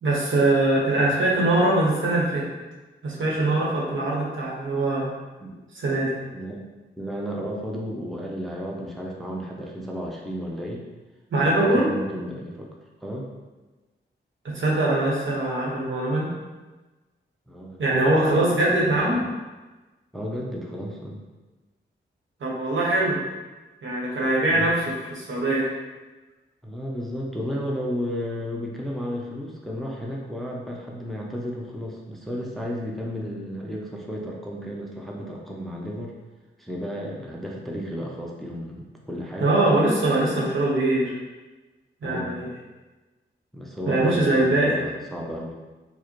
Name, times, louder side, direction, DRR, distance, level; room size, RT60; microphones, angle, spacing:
voice 1, 0.0-2.4 3.0-5.1 5.7-6.1 11.3-11.9 14.5-16.3 17.8-19.2 22.4-23.2 23.8-25.7 39.4-41.1 42.0-42.5 43.8-44.7, right 2 dB, 75° right, -5 dB, 1.0 m, -22 dB
voice 2, 7.0-10.8 11.4-12.7 13.0-13.3 17.5-19.3 20.1-21.2 24.5-24.7 26.6-36.1 36.6-39.5 42.0-42.4 43.5-45.5, equal, ahead, -2 dB, 0.5 m, -33 dB
4.6 x 2.1 x 3.0 m, 1.2 s
cardioid pair, 85°, 20 cm